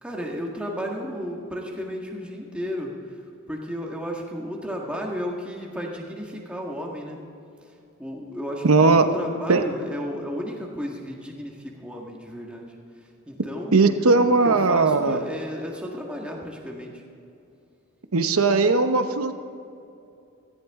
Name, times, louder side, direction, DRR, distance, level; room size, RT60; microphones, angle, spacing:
voice 1, 0.0-3.2 3.5-7.2 8.0-12.7 13.3-17.0, equal, 5° right, -1 dB, 1.7 m, -33 dB
voice 2, 8.6-9.1 9.5-9.6 13.7-15.2 18.1-19.3, right 3 dB, 80° right, 9 dB, 0.9 m, -18 dB
17.0 x 14.5 x 3.7 m, 2.6 s
head